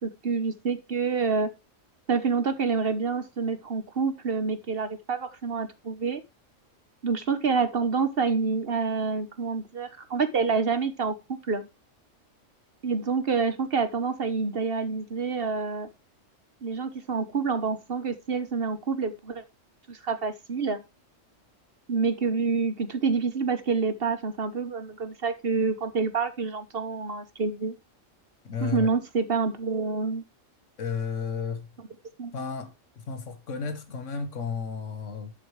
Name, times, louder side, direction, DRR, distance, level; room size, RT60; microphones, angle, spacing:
voice 1, 0.0-1.5 2.1-6.2 7.0-11.7 12.8-15.9 16.6-19.4 19.9-20.8 21.9-27.8 28.6-30.2 32.2-32.3, right 5 dB, 50° right, 1.2 m, -27 dB
voice 2, 28.4-28.9 30.8-31.7 32.3-35.3, left 5 dB, 70° left, 1.7 m, -33 dB
11.0 x 7.9 x 3.3 m
omnidirectional pair, 1.3 m